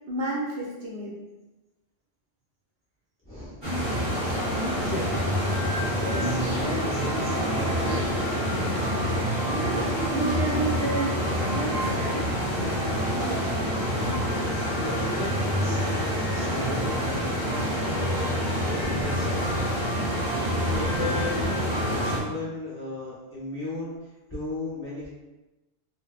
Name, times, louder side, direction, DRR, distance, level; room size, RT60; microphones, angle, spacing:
voice 1, 0.1-1.2 9.5-11.2 11.5-12.3, right 2 dB, 70° right, -4 dB, 0.9 m, -30 dB
voice 2, 3.2-3.7 4.7-5.1 6.0-8.2 14.7-17.1 17.7-19.3 20.7-21.7 22.0-23.9 24.3-25.1, left 1 dB, 15° left, -9 dB, 0.5 m, -36 dB
sound 1, 3.6-22.2, equal, 30° right, 0.7 m, -26 dB
2.6 x 2.2 x 2.3 m, 1.0 s
omnidirectional pair, 1.1 m